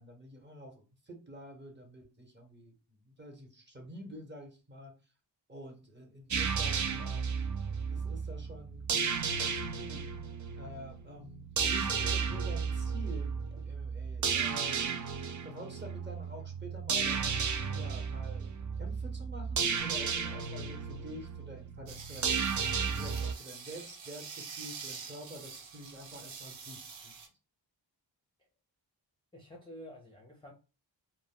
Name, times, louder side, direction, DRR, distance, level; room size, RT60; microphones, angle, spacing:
voice 1, 0.0-4.9 5.5-7.4 7.9-10.1 10.6-14.8 15.4-18.5 18.8-22.4 23.0-27.3, equal, 25° right, 0.9 m, -48 dB
sound 1, 6.3-23.3, right 6 dB, 45° right, 0.4 m, -33 dB
sound 2, 21.9-27.3, right 5 dB, 85° right, 0.7 m, -46 dB
voice 2, 29.3-30.5, equal, 10° left, 0.5 m, -49 dB
2.1 x 2.0 x 3.7 m
wide cardioid pair, 90°, 45 cm